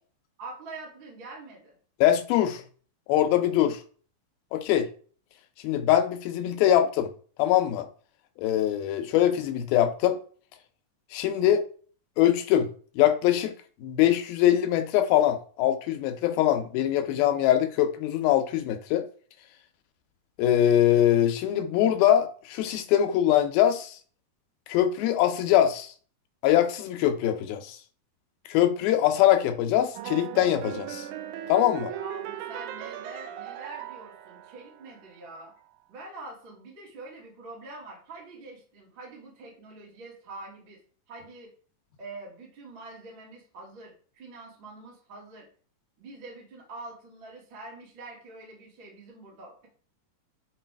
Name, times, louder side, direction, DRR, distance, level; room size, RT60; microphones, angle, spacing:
voice 1, 0.4-1.8 31.7-35.5 35.9-40.8 41.1-41.5 42.0-45.5 46.0-49.7, right 2 dB, 35° right, 2.9 m, -45 dB
voice 2, 2.0-2.6 3.1-3.8 4.5-4.9 5.6-7.1 7.4-7.9 8.4-10.2 11.1-11.7 12.2-12.7 13.0-13.5 13.8-19.0 20.4-24.0 24.7-25.9 26.4-27.8 28.5-31.1 31.5-31.9, left 11 dB, 90° left, 2.7 m, -23 dB
sound 1, 29.9-35.1, right 11 dB, 85° right, 1.7 m, -38 dB
8.3 x 4.1 x 4.6 m
omnidirectional pair, 4.1 m